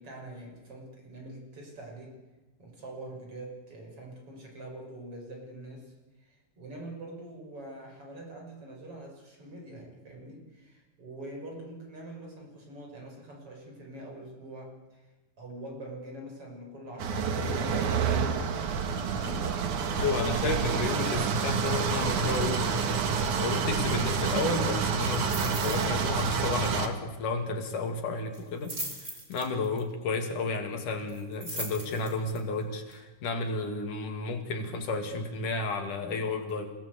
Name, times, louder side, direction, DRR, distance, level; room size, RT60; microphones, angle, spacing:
voice 1, 0.0-2.2 2.6-15.1 15.4-18.2 19.0-20.4, right 1 dB, 45° right, 1 dB, 7.3 m, -44 dB
sound 1, 17.0-26.9, right 5 dB, 75° right, 3.1 m, -28 dB
voice 2, 20.0-28.7 29.3-36.7, left 3 dB, 80° left, 5 dB, 4.0 m, -32 dB
sound 2, 25.0-25.9 26.2-26.5 26.7-26.8 28.3-29.8 31.1-32.4 32.9-33.0, right 1 dB, 20° right, 4.5 m, -39 dB
28.5 x 18.0 x 8.3 m, 1.1 s
omnidirectional pair, 3.5 m